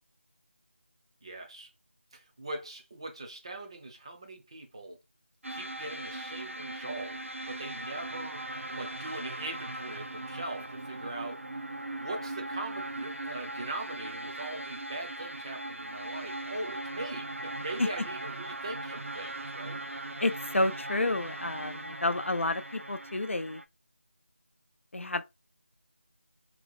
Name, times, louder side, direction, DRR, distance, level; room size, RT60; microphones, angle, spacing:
voice 1, 1.2-1.7 2.1-5.0 5.5-7.2 7.5-8.4 8.7-11.4 12.0-19.8, right 2 dB, 25° right, 0.6 m, -41 dB
sound 1, 5.4-23.6, right 1 dB, 85° right, 0.6 m, -39 dB
voice 2, 20.2-23.6 24.9-25.2, left 2 dB, 80° left, 0.5 m, -30 dB
2.9 x 2.1 x 4.1 m
figure-of-eight pair, 170°, 7 cm